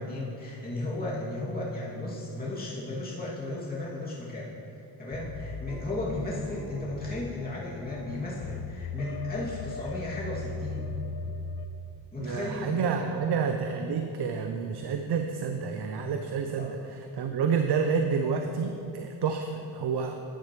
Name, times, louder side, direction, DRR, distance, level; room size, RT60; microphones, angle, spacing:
voice 1, 0.0-4.5 5.0-10.9 12.1-13.2 16.6-16.7, left 2 dB, 20° left, -7 dB, 2.6 m, -34 dB
sound 1, 5.1-11.7, left 4 dB, 60° left, 0.8 m, -39 dB
voice 2, 12.2-20.1, right 6 dB, 55° right, 5 dB, 0.8 m, -29 dB
13.0 x 10.5 x 3.2 m, 2.9 s
cardioid pair, 75°, 46 cm